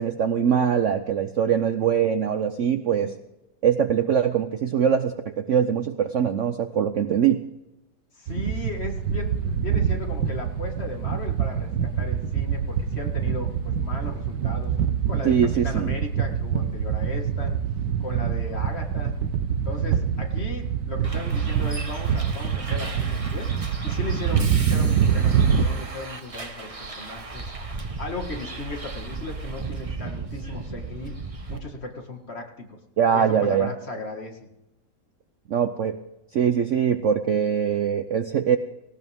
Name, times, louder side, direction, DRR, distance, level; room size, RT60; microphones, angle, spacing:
voice 1, 0.0-3.2 3.6-7.4 15.2-15.9 33.0-33.7 35.5-36.0 36.3-38.6, right 8 dB, 60° right, 9 dB, 0.9 m, -22 dB
voice 2, 8.1-14.7 15.1-17.6 18.0-19.2 19.6-23.5 23.8-31.2 31.5-32.8 33.1-34.4, left 2 dB, 35° left, 2 dB, 2.2 m, -36 dB
sound 1, 8.3-25.7, right 7 dB, 80° right, 1.7 m, -25 dB
Bus, 21.0-31.6, right 3 dB, 25° right, 1.0 m, -36 dB
18.5 x 18.0 x 3.6 m, 0.90 s
omnidirectional pair, 1.8 m